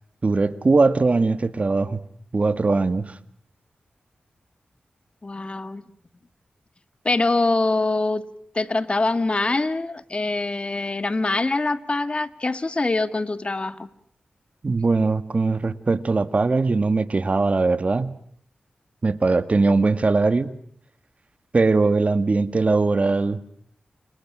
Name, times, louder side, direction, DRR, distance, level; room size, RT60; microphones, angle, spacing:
voice 1, 0.2-2.0 2.3-3.2 14.6-18.2 19.0-20.6 21.5-23.4, right 3 dB, 50° right, 13 dB, 1.9 m, -20 dB
voice 2, 5.2-5.8 7.1-8.2 8.5-13.9, left 2 dB, 40° left, 13 dB, 1.9 m, -24 dB
30.0 x 29.0 x 6.2 m, 0.62 s
cardioid pair, 50°, 3 cm